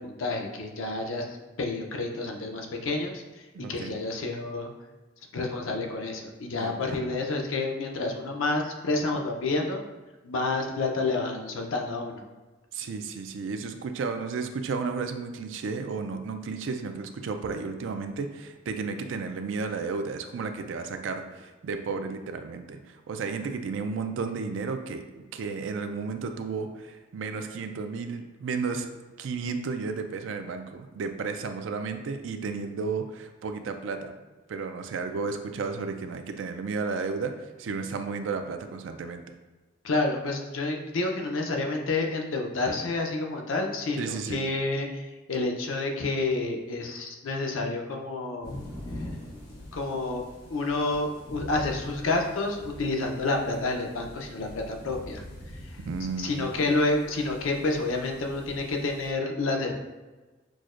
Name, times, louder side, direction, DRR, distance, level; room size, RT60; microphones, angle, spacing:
voice 1, 0.0-3.2 3.7-4.7 5.3-9.8 10.2-12.2 39.8-48.6 49.7-50.2 50.5-55.8 56.2-59.7, left 2 dB, 85° left, 1 dB, 0.6 m, -29 dB
voice 2, 3.5-3.9 6.5-7.0 12.7-28.9 29.2-34.1 34.5-39.2 44.0-44.4 55.8-56.4, right 4 dB, 70° right, 7 dB, 0.4 m, -33 dB
sound 1, 48.4-59.1, left 1 dB, 50° left, 1.2 m, -43 dB
6.1 x 2.1 x 2.4 m, 1.2 s
head